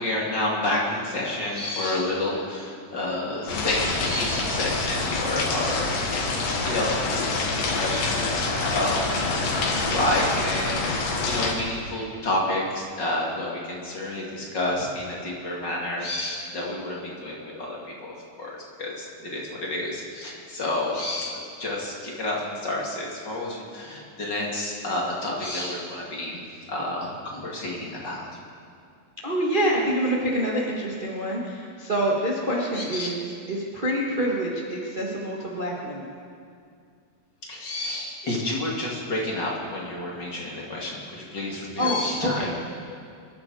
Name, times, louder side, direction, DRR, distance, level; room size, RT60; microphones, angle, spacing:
voice 1, 0.0-9.1 9.5-26.4 26.7-28.3 32.7-33.1 37.5-42.5, left 1 dB, 35° left, -3 dB, 2.5 m, -30 dB
sound 1, 3.5-11.5, left 3 dB, 70° left, 3.1 m, -26 dB
voice 2, 29.2-36.1 41.8-42.5, right 1 dB, 50° right, -4 dB, 0.6 m, -26 dB
25.5 x 11.5 x 4.8 m, 2.3 s
omnidirectional pair, 4.1 m